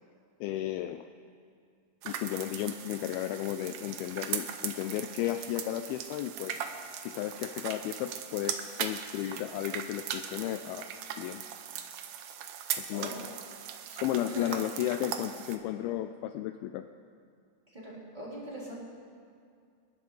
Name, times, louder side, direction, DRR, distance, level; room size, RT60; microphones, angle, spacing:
voice 1, 0.4-1.1 2.1-6.6 7.0-10.9 11.2-11.4 12.8-13.1 13.9-16.9, left 13 dB, 85° left, 8 dB, 2.3 m, -34 dB
Frying an Egg, 2.0-15.6, right 9 dB, 75° right, 1.9 m, -39 dB
voice 2, 12.9-13.3 14.3-14.6 17.7-18.8, right 1 dB, 10° right, -7 dB, 3.1 m, -41 dB
28.0 x 11.5 x 4.0 m, 2.3 s
omnidirectional pair, 4.7 m